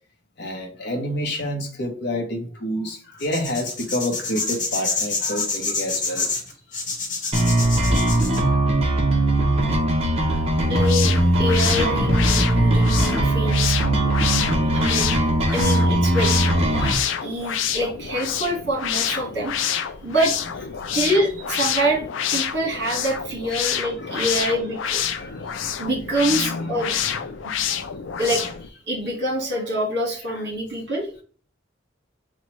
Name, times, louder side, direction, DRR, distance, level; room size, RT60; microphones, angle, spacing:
voice 1, 0.4-6.3 8.6-8.8 10.1-10.5 11.6-11.7 12.4-12.7 14.7-14.8 20.8-21.1 24.1-24.3 25.1-25.7 26.3-26.8 27.5-28.1 28.4-28.5 29.4-29.8 30.3-30.4, left 1 dB, 60° left, 1.0 m, -30 dB
sound 1, 3.2-8.4, left 4 dB, 40° left, 1.3 m, -27 dB
sound 2, 7.3-16.9, right 1 dB, 30° right, 0.8 m, -20 dB
sound 3, 10.6-28.7, left 8 dB, 75° left, 0.4 m, -28 dB
voice 2, 10.7-13.8 14.7-15.1 15.5-19.7 20.0-20.3 20.9-22.0 22.3-25.0 25.8-26.9 28.2-28.4 28.9-31.1, right 1 dB, 60° right, 1.6 m, -25 dB
6.1 x 2.4 x 3.1 m
head